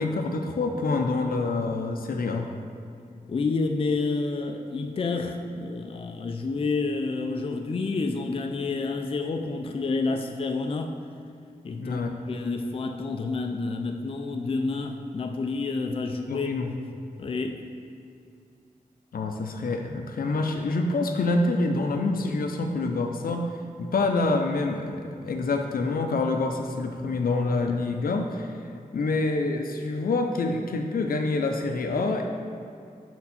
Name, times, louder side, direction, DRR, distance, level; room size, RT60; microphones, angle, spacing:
voice 1, 0.0-2.5 11.8-12.1 16.3-16.7 19.1-23.5 23.8-28.5 28.9-32.3, left 3 dB, 90° left, 4 dB, 0.6 m, -26 dB
voice 2, 3.3-10.9 11.6-12.0 12.3-16.5 17.2-17.6, left 3 dB, 40° left, 4 dB, 0.4 m, -29 dB
6.1 x 4.4 x 4.1 m, 2.5 s
wide cardioid pair, 130°, 15 cm